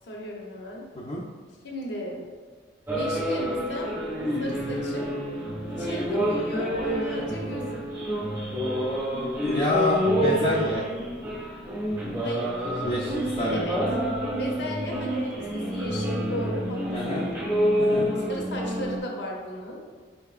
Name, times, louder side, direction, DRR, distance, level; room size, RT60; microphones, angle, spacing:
voice 1, 0.0-0.8 1.6-2.2 2.9-4.0 4.4-5.1 5.7-7.9 12.2-13.1 13.5-13.8 14.4-17.3 18.3-19.8, equal, 60° left, 0 dB, 0.7 m, -35 dB
sound 1, 2.9-19.0, equal, 10° right, 0.7 m, -28 dB
voice 2, 9.4-10.8 12.8-13.7 16.9-17.2 17.8-18.1, left 1 dB, 30° left, -8 dB, 0.5 m, -27 dB
4.6 x 3.4 x 2.4 m, 1.5 s
head